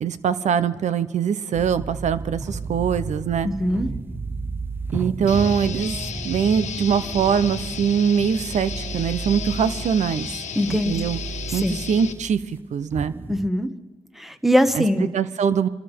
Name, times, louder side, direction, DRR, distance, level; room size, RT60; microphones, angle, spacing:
voice 1, 0.0-3.5 4.9-6.0 6.2-10.3 10.7-11.2 11.5-13.1 14.7-14.8 15.1-15.7, right 7 dB, 75° right, 13 dB, 0.8 m, -22 dB
sound 1, 1.5-13.5, right 3 dB, 15° right, 0.7 m, -33 dB
voice 2, 3.4-3.9 10.5-10.9 11.5-11.8 13.3-13.7 14.2-15.1, equal, ahead, 9 dB, 1.3 m, -21 dB
sound 2, 5.3-12.1, left 6 dB, 75° left, 1.4 m, -34 dB
26.5 x 13.0 x 3.6 m, 1.2 s
cardioid pair, 70°, 12 cm